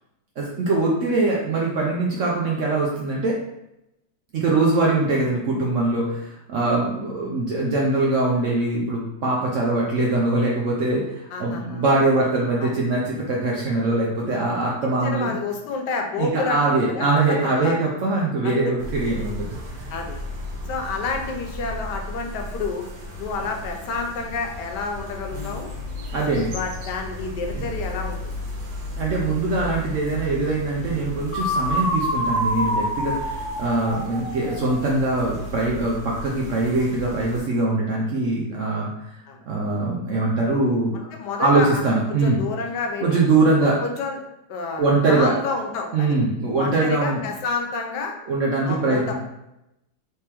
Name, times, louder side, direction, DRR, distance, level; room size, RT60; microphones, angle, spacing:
voice 1, 0.4-3.4 4.3-15.3 16.2-19.9 26.1-26.5 27.5-27.7 29.0-39.1 39.5-40.9 41.4-42.4 43.0-43.8 44.8-45.3 45.9-47.2 48.3-49.1, right 2 dB, 70° right, -3 dB, 0.7 m, -22 dB
voice 2, 11.3-11.8 12.6-12.8 14.8-17.8 18.4-18.5 19.9-20.2 20.7-22.9 23.2-25.7 26.3-28.4 39.3-39.4 40.9-41.8 42.1-43.2 43.6-44.2 44.5-46.2 46.6-48.1 48.7-49.1, left 4 dB, 80° left, 3 dB, 1.2 m, -29 dB
sound 1, 18.8-37.4, left 1 dB, 85° right, 1.5 m, -35 dB
sound 2, 31.3-35.2, equal, 50° left, 1.2 m, -26 dB
3.4 x 3.3 x 2.9 m, 0.87 s
omnidirectional pair, 1.8 m